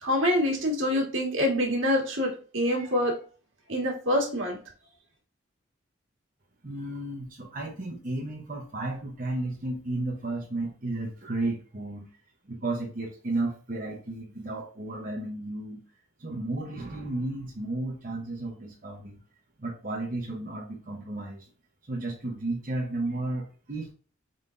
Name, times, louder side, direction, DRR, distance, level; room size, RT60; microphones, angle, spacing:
voice 1, 0.0-3.1 3.7-4.6, left 1 dB, 85° right, -1 dB, 1.8 m, -26 dB
voice 2, 6.6-12.1 12.5-15.8 16.2-19.2 19.6-21.5 21.9-23.9, right 2 dB, 45° right, -2 dB, 0.9 m, -33 dB
4.3 x 3.9 x 2.6 m, 0.39 s
head